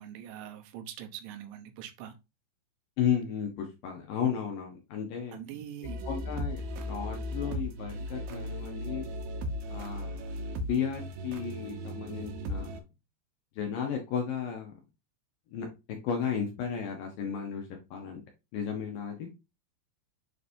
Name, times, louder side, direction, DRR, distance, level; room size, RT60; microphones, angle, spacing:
voice 1, 0.0-2.2 5.3-6.0, right 10 dB, 90° right, 3.4 m, -43 dB
voice 2, 3.0-5.4 6.1-9.1 9.7-10.1 10.7-12.7 13.6-14.7 15.5-15.7 16.0-18.2 18.5-19.3, left 7 dB, 70° left, 2.2 m, -33 dB
sound 1, 5.8-12.8, equal, 70° right, 2.4 m, -36 dB
9.6 x 4.0 x 2.6 m
omnidirectional pair, 5.2 m